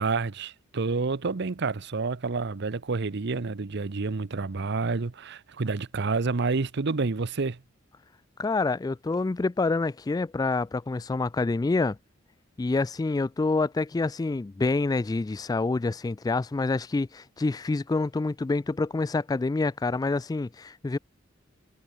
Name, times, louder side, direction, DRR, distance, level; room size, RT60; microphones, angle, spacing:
voice 1, 0.0-7.6, right 4 dB, 60° right, 0.8 m, -29 dB
voice 2, 8.4-12.0 12.6-21.0, left 3 dB, 20° left, 0.3 m, -27 dB
head